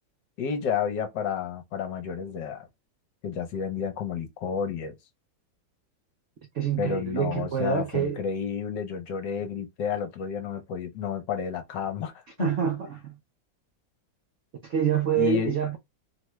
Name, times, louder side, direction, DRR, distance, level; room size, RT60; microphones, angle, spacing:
voice 1, 0.4-2.7 3.2-4.9 6.8-12.1 12.4-12.5 15.1-15.5, left 7 dB, 70° left, 1.4 m, -31 dB
voice 2, 6.5-8.2 12.4-13.2 14.6-15.8, right 8 dB, 80° right, 0.6 m, -26 dB
3.5 x 2.2 x 3.0 m
omnidirectional pair, 2.1 m